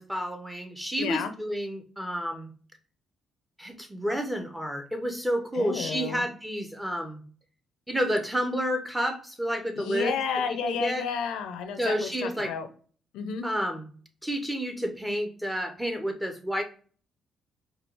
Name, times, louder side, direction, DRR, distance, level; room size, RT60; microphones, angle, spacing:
voice 1, 0.0-2.5 3.6-7.2 7.9-10.2 10.5-11.0 11.8-12.5 13.4-13.9 14.2-16.6, equal, 10° right, 5 dB, 0.9 m, -30 dB
voice 2, 1.0-1.3 5.6-6.2 9.8-12.7 13.1-13.4, left 6 dB, 90° left, 8 dB, 0.6 m, -31 dB
4.6 x 2.3 x 3.3 m, 0.42 s
cardioid pair, 90°, 0 cm